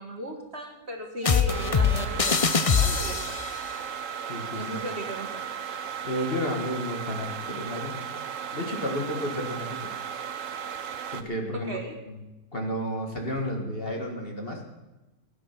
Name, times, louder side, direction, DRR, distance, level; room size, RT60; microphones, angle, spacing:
voice 1, 0.0-3.3 4.5-5.5 11.5-12.0, right 1 dB, 40° right, 2 dB, 2.0 m, -37 dB
sound 1, 1.2-3.6, left 5 dB, 55° left, 0.3 m, -23 dB
sound 2, 1.5-11.2, right 8 dB, 55° right, 1.1 m, -35 dB
voice 2, 4.3-4.6 6.0-8.0 8.5-9.9 11.1-11.8 12.1-12.2 12.5-14.6, equal, 35° left, 1 dB, 1.9 m, -31 dB
19.0 x 10.5 x 6.0 m, 1.0 s
omnidirectional pair, 1.8 m